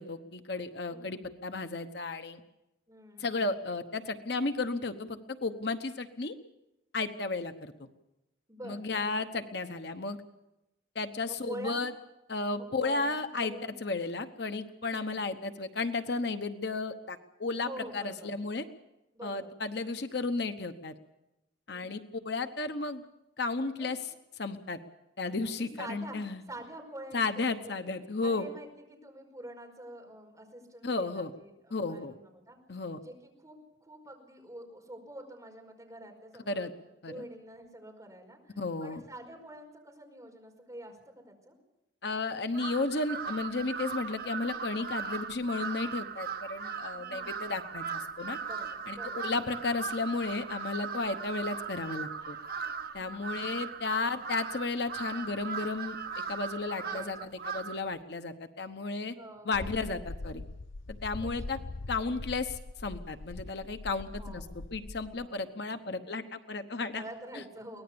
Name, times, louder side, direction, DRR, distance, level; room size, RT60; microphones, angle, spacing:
voice 1, 0.0-2.4 3.2-6.3 6.9-7.9 8.6-10.2 10.9-11.9 12.3-13.5 13.8-18.6 19.2-20.9 21.7-23.0 23.4-24.0 24.4-24.8 25.2-26.4 27.1-28.5 30.8-31.3 31.7-32.1 32.7-33.0 36.5-36.7 37.0-37.2 38.6-39.0 42.0-48.4 48.9-52.4 52.9-59.1 59.5-60.4 60.9-61.6 61.9-67.0, left 3 dB, 60° left, 8 dB, 1.0 m, -33 dB
voice 2, 0.9-1.4 2.9-3.5 8.5-9.0 11.3-11.8 12.6-13.7 14.9-15.3 17.5-18.3 19.1-19.5 21.7-22.1 23.8-23.9 25.4-27.5 27.8-27.9 28.2-36.7 37.1-41.0 41.3-41.6 46.9-47.5 48.4-49.3 54.0-54.3 56.8-57.9 59.1-59.9 61.2-61.7 64.1-64.6 65.1-65.5 66.8-67.8, right 1 dB, 15° right, 0 dB, 5.2 m, -47 dB
Crow, 42.5-57.9, right 6 dB, 50° right, 0.9 m, -38 dB
sound 1, 59.5-65.3, left 2 dB, 90° left, 0.7 m, -42 dB
23.5 x 18.5 x 7.0 m, 0.93 s
head